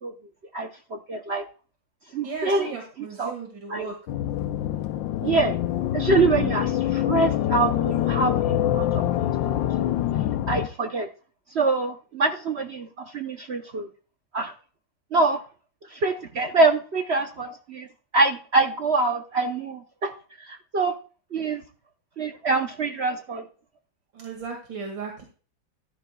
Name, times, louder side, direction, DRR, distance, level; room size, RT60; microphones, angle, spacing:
voice 1, 0.5-1.4 2.1-2.8 3.2-3.3 3.7-3.9 5.2-5.6 5.9-9.9 10.5-11.1 11.5-13.9 14.3-14.5 15.1-15.4 15.9-17.9 18.1-20.1 20.5-20.9 21.3-21.6 22.2-23.4, right 3 dB, 55° right, 6 dB, 0.7 m, -25 dB
voice 2, 2.2-4.0 24.1-25.2, right 5 dB, 70° right, 2 dB, 2.8 m, -36 dB
sound 1, 4.1-10.7, left 12 dB, 80° left, 1.4 m, -25 dB
14.0 x 12.0 x 2.3 m, 0.37 s
omnidirectional pair, 2.1 m